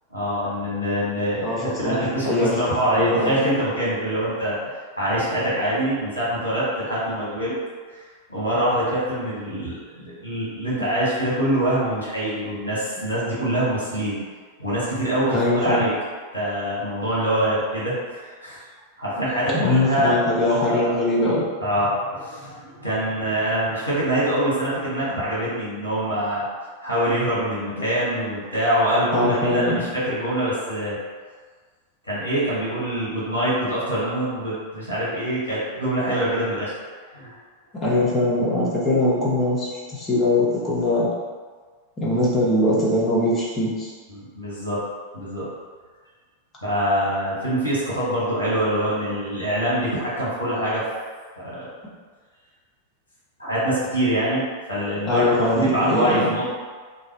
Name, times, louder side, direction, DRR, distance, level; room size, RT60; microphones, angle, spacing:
voice 1, 0.1-4.6 5.0-7.6 8.3-14.2 14.6-15.9 16.3-18.6 19.0-20.1 20.7-20.9 21.6-26.5 26.8-31.0 32.0-36.8 37.1-37.3 44.1-44.8 45.1-45.4 46.6-50.8 51.4-51.7 53.4-56.5, right 1 dB, 80° left, -9 dB, 1.1 m, -24 dB
voice 2, 1.4-2.0 2.2-2.6 2.8-3.4 15.3-15.8 19.5-21.4 29.1-29.8 37.8-41.1 42.0-43.9 55.0-56.3, left 1 dB, 20° left, -6 dB, 0.9 m, -22 dB
2.5 x 2.1 x 3.8 m, 1.5 s
figure-of-eight pair, 90°, 0 cm